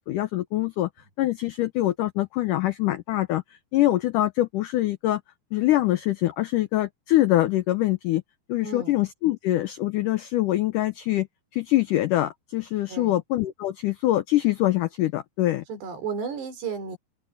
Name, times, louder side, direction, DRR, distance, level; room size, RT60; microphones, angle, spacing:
voice 1, 0.1-0.9 1.2-3.4 3.7-5.2 5.5-8.2 8.5-11.3 11.5-15.6, left 15 dB, 85° left, 1.8 m, -24 dB
voice 2, 8.6-8.9 12.9-13.2 15.7-17.0, right 5 dB, 85° right, 6.3 m, -33 dB
open air
omnidirectional pair, 4.7 m